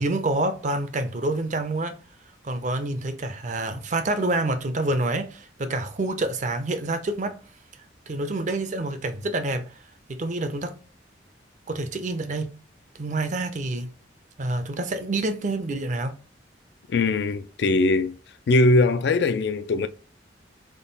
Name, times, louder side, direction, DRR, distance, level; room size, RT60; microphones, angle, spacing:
voice 1, 0.0-2.0 2.4-7.4 8.1-9.7 10.1-10.7 11.7-12.5 13.0-13.9 14.4-16.1, right 2 dB, 40° right, 0.5 m, -27 dB
voice 2, 16.9-18.2 18.5-19.9, left 2 dB, 60° left, 0.4 m, -21 dB
3.6 x 2.3 x 3.9 m
head